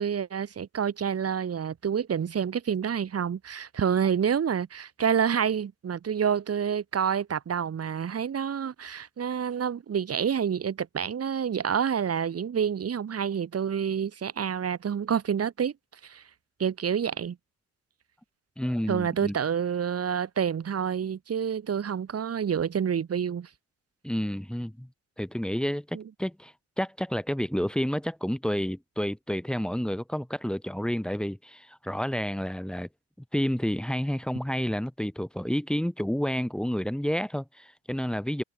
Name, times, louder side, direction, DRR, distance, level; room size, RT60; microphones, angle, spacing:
voice 1, 0.0-15.7 16.0-16.2 16.6-17.4 18.9-23.5 25.9-26.0, right 7 dB, 50° right, 7.7 m, -28 dB
voice 2, 18.6-19.3 24.0-24.9 25.2-32.9 33.3-38.4, equal, 5° left, 6.0 m, -30 dB
cardioid pair, 90°, 30 cm